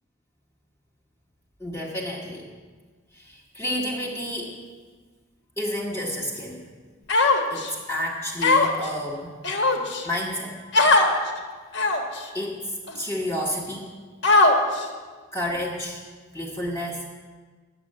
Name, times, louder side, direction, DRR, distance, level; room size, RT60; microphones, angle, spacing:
voice 1, 1.6-2.5 3.1-4.6 5.6-6.6 7.5-9.4 10.0-10.5 12.3-13.9 15.3-16.0 16.3-17.1, left 1 dB, 10° left, -3 dB, 1.2 m, -30 dB
Human voice, 7.1-7.7 8.4-8.9 9.4-10.0 10.7-11.1 11.7-12.2 12.9-13.0 14.2-14.8, left 3 dB, 55° left, 1.3 m, -19 dB
10.0 x 7.6 x 7.4 m, 1.5 s
head